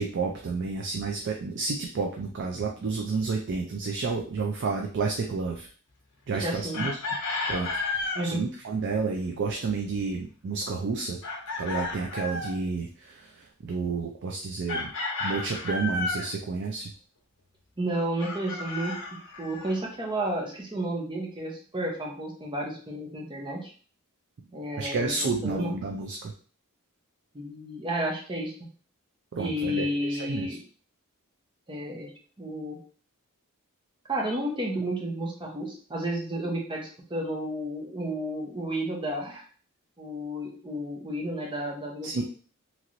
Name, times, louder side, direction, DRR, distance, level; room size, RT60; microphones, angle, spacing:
voice 1, 0.0-5.7 6.3-7.0 7.5-11.2 11.6-14.9 15.2-16.9 24.8-26.3 29.3-29.9 30.3-30.5 42.0-42.2, right 4 dB, 55° right, 1 dB, 0.4 m, -30 dB
voice 2, 6.3-6.8 8.1-8.4 17.8-19.0 19.4-23.7 24.5-25.7 27.3-28.5 29.4-30.6 31.7-32.1 32.4-32.8 34.1-39.4 40.0-42.2, right 1 dB, 20° right, -1 dB, 0.7 m, -32 dB
Chicken rooster, 6.7-8.3 11.2-12.6 14.7-16.3 18.2-19.8, left 3 dB, 60° left, 0.9 m, -32 dB
3.0 x 2.9 x 2.5 m, 0.42 s
head